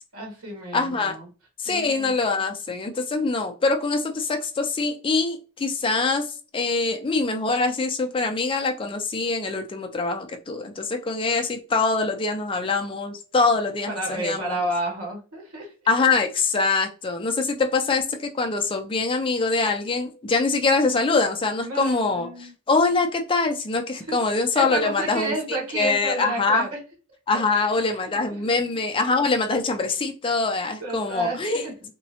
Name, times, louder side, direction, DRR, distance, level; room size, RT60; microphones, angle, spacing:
voice 1, 0.1-1.3 1.6-2.1 13.9-15.7 21.6-22.5 24.1-24.2 24.5-26.8 27.3-28.6 30.8-31.7, right 1 dB, 90° right, 0 dB, 1.3 m, -31 dB
voice 2, 0.7-1.2 1.6-14.6 15.9-26.7 27.3-31.6, left 3 dB, 25° left, 5 dB, 0.3 m, -24 dB
3.7 x 2.0 x 2.7 m, 0.34 s
head